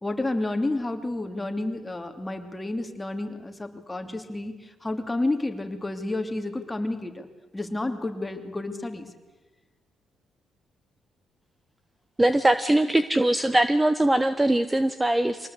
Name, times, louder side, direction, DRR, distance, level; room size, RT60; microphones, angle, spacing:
voice 1, 0.0-7.3 7.5-9.1, left 2 dB, 15° left, 5 dB, 3.0 m, -30 dB
voice 2, 12.2-15.5, right 1 dB, 10° right, 11 dB, 1.0 m, -21 dB
25.0 x 19.0 x 8.4 m, 1.2 s
cardioid pair, 90°, 0 cm